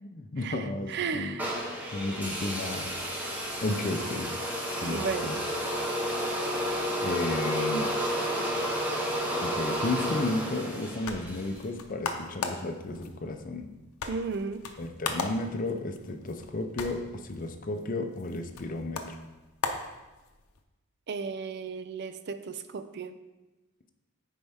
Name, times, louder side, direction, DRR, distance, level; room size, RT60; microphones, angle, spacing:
voice 1, 0.0-1.4 1.9-2.9 3.6-4.3 4.8-5.4 7.0-7.9 9.4-13.7 14.8-19.2, left 2 dB, 40° left, 6 dB, 0.5 m, -33 dB
voice 2, 0.9-1.5 4.9-5.3 14.1-14.6 21.1-23.1, right 5 dB, 50° right, 10 dB, 0.4 m, -34 dB
sound 1, 1.4-11.6, equal, 5° right, 1.0 m, -31 dB
sound 2, 10.7-20.6, left 4 dB, 85° left, 0.8 m, -39 dB
9.5 x 4.6 x 3.5 m, 1.1 s
head